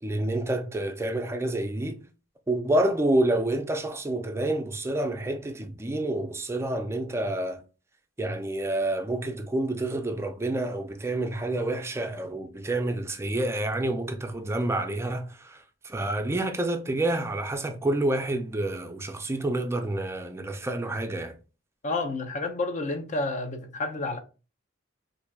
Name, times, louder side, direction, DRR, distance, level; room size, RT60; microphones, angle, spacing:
voice 1, 0.0-2.0 2.5-7.6 8.2-21.3, right 1 dB, 15° right, 0.4 m, -28 dB
voice 2, 21.8-24.2, left 2 dB, 40° left, 0.5 m, -30 dB
4.3 x 2.6 x 2.3 m
head